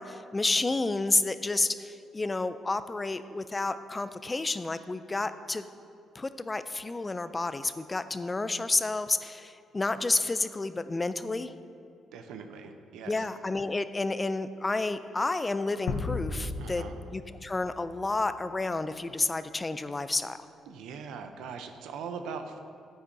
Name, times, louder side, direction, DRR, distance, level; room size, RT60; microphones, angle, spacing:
voice 1, 0.0-5.7 6.1-11.5 13.1-20.5, left 3 dB, 20° left, 12 dB, 0.3 m, -30 dB
voice 2, 12.1-13.3 16.6-16.9 20.7-22.6, right 6 dB, 90° right, 7 dB, 0.5 m, -41 dB
sound 1, 15.9-18.3, left 3 dB, 90° left, 0.7 m, -35 dB
9.5 x 8.8 x 2.7 m, 2.4 s
cardioid pair, 90°, 0 cm